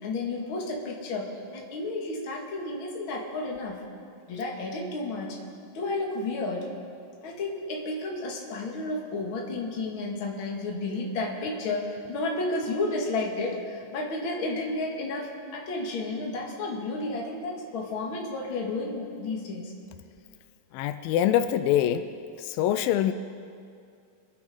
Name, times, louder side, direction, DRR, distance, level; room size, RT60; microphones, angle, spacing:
voice 1, 0.0-3.8 4.3-5.4 5.7-6.7 7.2-19.7, left 2 dB, 45° left, -1 dB, 2.2 m, -32 dB
voice 2, 20.7-22.1 22.4-23.1, left 11 dB, 85° left, 11 dB, 2.3 m, -24 dB
25.5 x 8.7 x 5.1 m, 2.4 s
omnidirectional pair, 4.1 m